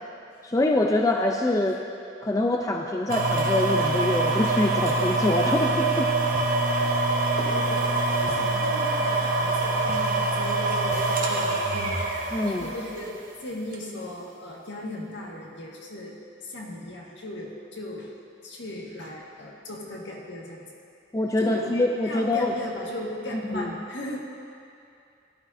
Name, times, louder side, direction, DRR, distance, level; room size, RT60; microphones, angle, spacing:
voice 1, 0.4-1.8 2.2-6.1 6.7-6.8 12.3-12.7 21.1-22.5 23.5-23.7, left 2 dB, 15° left, 2 dB, 0.4 m, -24 dB
sound 1, 3.1-13.1 13.7-13.8, right 2 dB, 45° right, 1.1 m, -25 dB
voice 2, 7.3-7.9 8.2-18.1 18.4-20.6 21.4-24.2, left 1 dB, 65° left, -2 dB, 1.7 m, -37 dB
15.5 x 12.0 x 2.6 m, 2.5 s
head